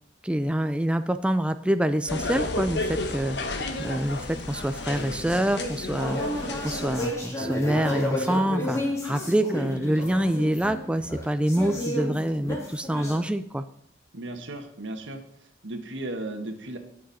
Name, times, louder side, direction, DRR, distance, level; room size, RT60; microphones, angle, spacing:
voice 1, 0.2-3.4 3.8-13.6, right 1 dB, 5° right, 10 dB, 0.4 m, -26 dB
sound 1, 2.1-7.1, left 2 dB, 65° left, 1.3 m, -32 dB
sound 2, 3.8-13.2, left 1 dB, 15° left, 2.4 m, -32 dB
voice 2, 14.1-15.2 15.6-16.8, right 2 dB, 85° right, 6 dB, 1.5 m, -35 dB
18.5 x 6.3 x 4.2 m, 0.67 s
head